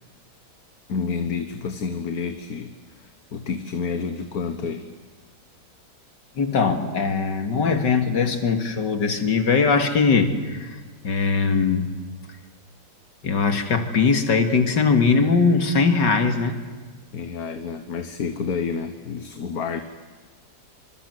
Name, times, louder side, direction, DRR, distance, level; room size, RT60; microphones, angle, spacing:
voice 1, 0.9-4.9 17.1-19.8, left 5 dB, 60° left, 8 dB, 1.8 m, -29 dB
voice 2, 6.4-10.7 11.0-11.9 13.2-16.6, left 4 dB, 90° left, 7 dB, 2.8 m, -20 dB
27.5 x 26.5 x 8.0 m, 1.4 s
omnidirectional pair, 1.8 m